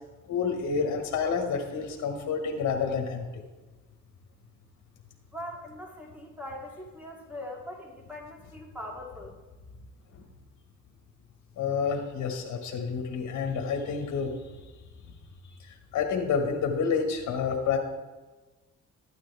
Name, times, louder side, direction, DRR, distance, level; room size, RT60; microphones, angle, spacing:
voice 1, 0.3-3.4 10.1-10.2 11.6-14.6 15.0-15.1 15.9-17.8, left 6 dB, 70° left, 3 dB, 1.4 m, -29 dB
voice 2, 5.3-9.3, left 1 dB, 5° right, -1 dB, 2.6 m, -41 dB
12.5 x 8.8 x 3.4 m, 1.2 s
cardioid pair, 90°, 30 cm